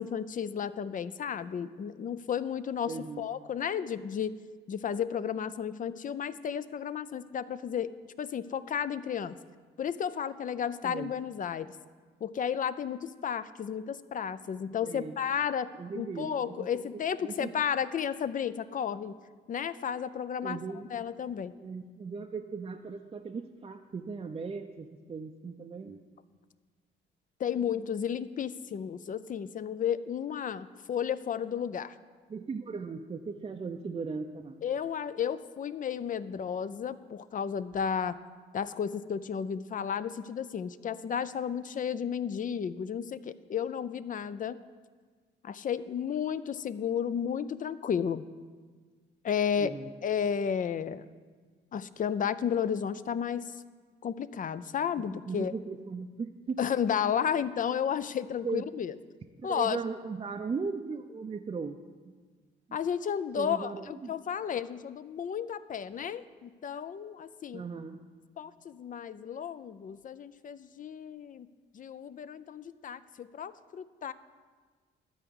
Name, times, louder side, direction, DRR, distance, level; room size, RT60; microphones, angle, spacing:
voice 1, 0.0-4.4 4.7-7.9 8.2-9.4 9.8-11.7 12.2-19.2 19.5-20.6 20.9-21.6 27.4-32.0 34.6-38.2 38.5-44.6 45.4-48.3 49.2-49.8 50.0-51.1 51.7-53.6 54.0-55.6 56.6-59.0 59.4-59.8 62.7-67.6 68.4-71.5 71.7-74.1, left 8 dB, 40° left, 15 dB, 0.4 m, -33 dB
voice 2, 2.9-3.3 10.8-11.1 14.8-15.2 15.8-16.8 17.2-17.5 20.4-20.9 21.6-26.0 32.3-34.6 49.6-49.9 55.0-56.6 58.4-58.6 59.5-61.8 62.0-62.1 63.4-64.1 67.5-68.0, right 5 dB, 25° right, 4 dB, 0.5 m, -38 dB
12.5 x 4.7 x 7.9 m, 1.5 s
cardioid pair, 90°, 20 cm